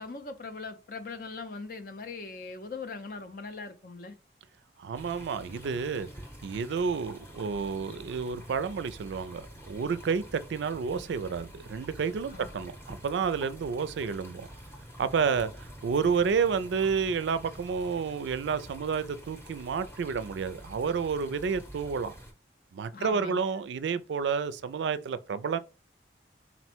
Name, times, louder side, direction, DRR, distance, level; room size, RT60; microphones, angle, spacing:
voice 1, 0.0-4.1 12.3-12.5 22.9-23.4, left 4 dB, 50° left, 0.5 m, -40 dB
voice 2, 4.8-6.1 6.4-14.5 15.0-22.1 22.7-25.6, right 6 dB, 80° right, 0.3 m, -30 dB
sound 1, 4.9-22.3, equal, 15° left, 0.7 m, -47 dB
4.1 x 2.1 x 4.3 m
head